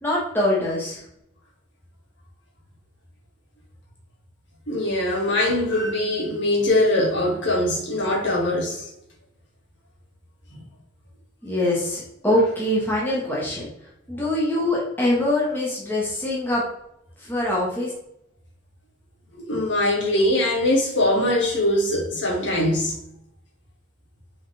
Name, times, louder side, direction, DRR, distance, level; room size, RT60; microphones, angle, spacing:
voice 1, 0.0-1.0 11.4-13.7 14.1-16.6 17.2-17.9, left 1 dB, 10° left, 1.9 m, -23 dB
voice 2, 4.7-8.9 19.3-23.0, left 1 dB, 70° left, 2.5 m, -22 dB
6.1 x 5.4 x 3.6 m
head